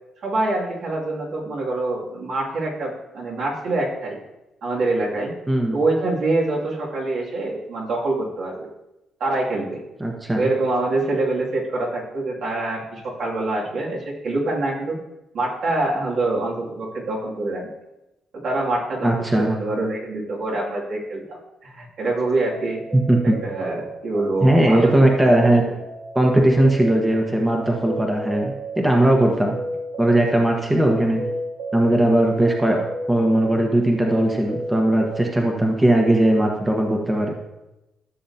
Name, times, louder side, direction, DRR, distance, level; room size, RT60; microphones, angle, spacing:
voice 1, 0.2-4.2 4.6-5.3 5.7-8.7 9.2-9.8 10.4-15.0 15.3-17.7 18.3-22.8 23.2-25.1 25.4-25.5, right 2 dB, 65° right, -4 dB, 2.6 m, -25 dB
voice 2, 10.0-10.5 19.0-19.5 23.1-23.3 24.4-25.6 26.1-29.6 30.0-31.2 31.7-32.8 33.1-37.4, right 1 dB, 15° right, 1 dB, 1.2 m, -18 dB
sound 1, 22.1-35.3, right 2 dB, 85° right, 1.2 m, -34 dB
14.0 x 6.7 x 2.9 m, 0.96 s
cardioid pair, 90°, 0 cm